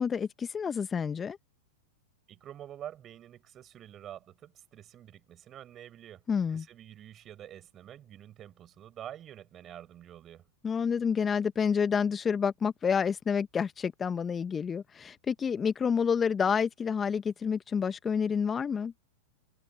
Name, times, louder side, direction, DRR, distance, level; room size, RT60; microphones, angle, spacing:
voice 1, 0.0-1.4 6.3-6.6 10.6-18.9, left 6 dB, 20° left, 1.1 m, -29 dB
voice 2, 2.3-6.2 6.5-10.5, right 11 dB, 30° right, 7.8 m, -47 dB
figure-of-eight pair, 95°, 0 cm